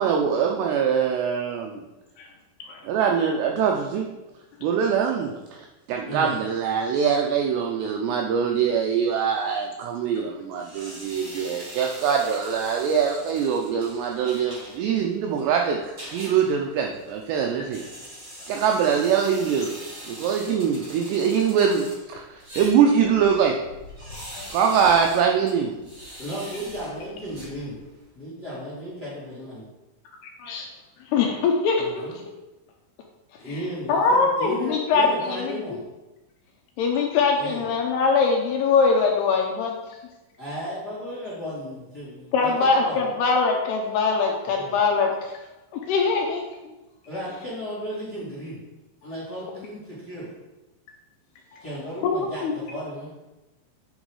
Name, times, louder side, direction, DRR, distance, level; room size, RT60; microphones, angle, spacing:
voice 1, 0.0-1.8 2.8-4.1 4.6-17.8 18.5-19.7 20.1-22.3 22.6-23.5 24.5-25.8, right 7 dB, 85° right, 2 dB, 2.5 m, -23 dB
voice 2, 6.1-6.4 25.8-25.9 26.2-27.7 28.1-29.6 31.8-32.1 33.4-35.8 37.4-37.7 40.4-43.1 44.5-44.7 47.0-48.6 49.0-50.3 51.6-53.1, equal, 35° left, -7 dB, 1.8 m, -34 dB
sound 1, 10.6-28.1, equal, 25° right, 2.2 m, -43 dB
voice 3, 24.1-24.5 30.4-30.7 31.1-32.1 33.5-33.6 33.9-35.6 36.8-39.8 42.3-45.3 45.9-46.4 52.0-52.5, left 4 dB, 80° left, 1 dB, 2.4 m, -22 dB
9.1 x 5.3 x 4.8 m, 1.0 s
omnidirectional pair, 5.5 m